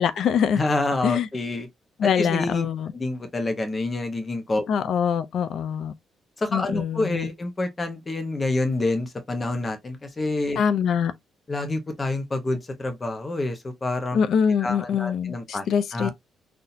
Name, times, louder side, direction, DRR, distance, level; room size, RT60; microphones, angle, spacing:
voice 1, 0.0-0.6 1.0-1.3 2.0-2.9 4.7-5.9 6.5-7.3 10.6-11.1 14.1-16.1, left 7 dB, 70° left, 0.5 m, -24 dB
voice 2, 0.6-1.7 2.0-2.7 2.9-4.6 6.4-10.6 11.5-14.2 14.6-16.1, left 2 dB, 30° left, 1.0 m, -27 dB
4.1 x 2.8 x 2.7 m
cardioid pair, 90°, 0 cm